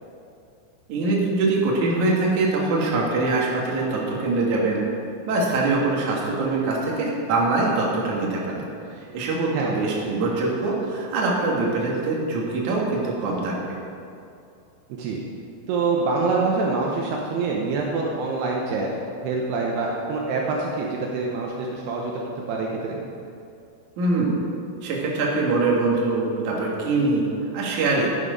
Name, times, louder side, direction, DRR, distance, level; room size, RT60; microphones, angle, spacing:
voice 1, 0.9-4.8 5.3-8.7 8.9-13.7 24.0-24.3 24.8-27.3 27.5-28.1, right 3 dB, 60° right, -3 dB, 2.1 m, -23 dB
voice 2, 9.5-9.8 14.9-15.2 15.7-23.0, right 3 dB, 90° right, -2 dB, 2.3 m, -26 dB
11.0 x 8.9 x 5.1 m, 2.5 s
omnidirectional pair, 6.0 m